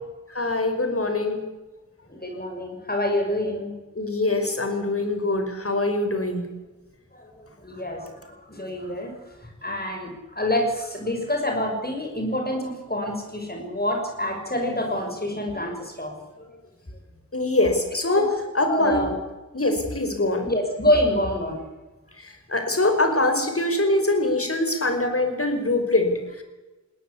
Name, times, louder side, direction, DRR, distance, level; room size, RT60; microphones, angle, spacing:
voice 1, 0.3-1.4 3.9-6.5 17.3-18.3 18.5-19.0 19.5-20.5 22.2-26.4, left 2 dB, 45° left, 6 dB, 5.0 m, -23 dB
voice 2, 2.1-3.7 7.1-9.1 9.6-16.1 16.4-16.5 18.1-18.3 18.7-19.2 20.4-21.6, left 1 dB, 30° left, 3 dB, 6.3 m, -27 dB
20.5 x 18.5 x 8.5 m, 1.2 s
wide cardioid pair, 40°, 31 cm